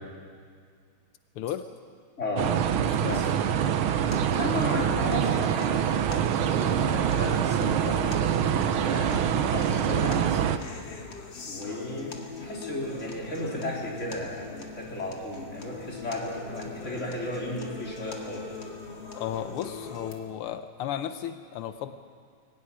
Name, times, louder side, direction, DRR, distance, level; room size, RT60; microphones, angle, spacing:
voice 1, 2.2-2.5 3.1-3.2 4.3-8.0 8.4-10.6 11.5-18.5, left 1 dB, 30° left, -3 dB, 4.1 m, -34 dB
sound 1, 2.4-10.6, right 9 dB, 75° right, 1.7 m, -25 dB
voice 2, 2.8-3.2 19.1-21.9, left 10 dB, 90° left, 9 dB, 1.7 m, -34 dB
sound 2, 4.1-20.1, left 4 dB, 60° left, 2.7 m, -42 dB
23.0 x 15.0 x 9.9 m, 2.1 s
omnidirectional pair, 2.4 m